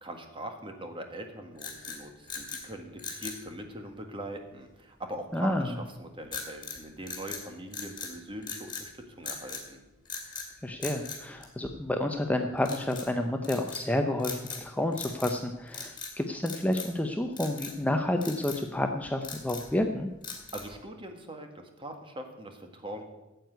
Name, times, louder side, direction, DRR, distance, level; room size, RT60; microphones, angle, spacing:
voice 1, 0.0-9.8 20.5-23.0, right 1 dB, 25° right, 5 dB, 1.6 m, -42 dB
sound 1, 1.6-2.7 3.0-3.4 6.3-6.8 7.1-8.1 8.4-8.9 9.3-9.7 10.1-10.5 10.8-12.0 12.6-13.1 13.4-13.9 14.2-14.7 14.9-15.4 15.7-16.1 16.5-17.0 17.4-17.8 18.2-18.6 19.1-19.7 20.2-20.8, left 5 dB, 20° left, 2.4 m, -40 dB
voice 2, 5.3-5.7 10.6-20.1, left 1 dB, 5° left, 4 dB, 0.6 m, -30 dB
9.1 x 8.1 x 9.3 m, 0.99 s
head